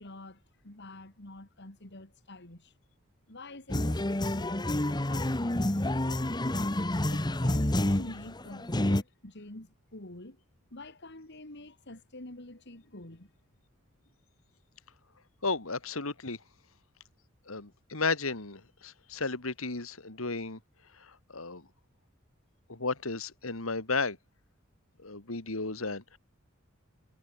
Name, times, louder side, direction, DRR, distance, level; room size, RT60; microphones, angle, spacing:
voice 1, 0.0-2.7 3.3-6.3 7.1-10.4 10.7-13.3, left 2 dB, 55° left, 3.1 m, -47 dB
sound 1, 3.7-9.0, left 1 dB, 20° left, 1.2 m, -29 dB
voice 2, 15.4-16.4 17.5-20.6 21.0-21.7 22.7-24.2 25.0-26.2, left 3 dB, 80° left, 2.7 m, -34 dB
head